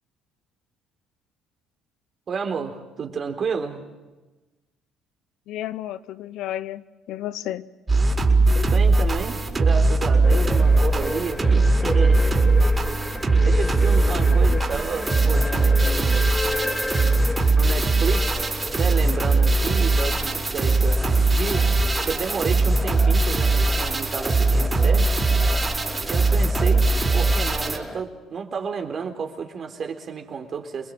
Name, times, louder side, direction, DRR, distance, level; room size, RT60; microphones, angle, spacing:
voice 1, 2.3-3.8 8.5-12.4 13.4-16.3 17.5-21.7 22.0-25.1 26.1-30.9, right 6 dB, 50° right, 4 dB, 3.9 m, -31 dB
voice 2, 5.5-7.6, left 13 dB, 75° left, 15 dB, 0.8 m, -32 dB
sound 1, 7.9-27.8, right 3 dB, 25° right, 4.8 m, -20 dB
sound 2, 10.2-28.0, left 2 dB, 15° left, 2.0 m, -34 dB
28.5 x 21.5 x 7.6 m, 1.2 s
supercardioid pair, 70°, 0 cm